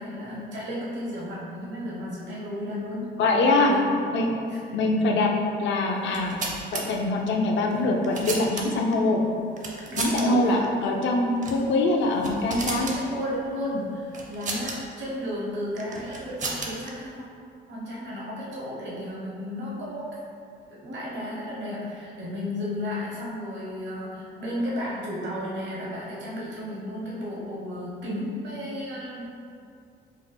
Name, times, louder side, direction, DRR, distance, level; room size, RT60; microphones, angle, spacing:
voice 1, 0.0-3.2 3.6-3.8 4.5-4.6 9.9-10.5 12.8-17.3 17.7-20.2 20.7-29.3, left 1 dB, 65° right, -6 dB, 1.0 m, -33 dB
voice 2, 3.2-3.7 4.1-4.3 4.7-5.3 5.6-6.4 6.7-9.2 10.0-12.9, left 2 dB, 65° left, 1 dB, 0.5 m, -23 dB
sound 1, 6.0-6.8 7.7-8.9 9.6-10.2 10.5-10.7 11.4-11.6 12.0-13.0 14.1-14.8 15.8-16.9, right 3 dB, 40° right, 0.6 m, -33 dB
4.5 x 2.1 x 3.3 m, 2.4 s
cardioid pair, 90°, 20 cm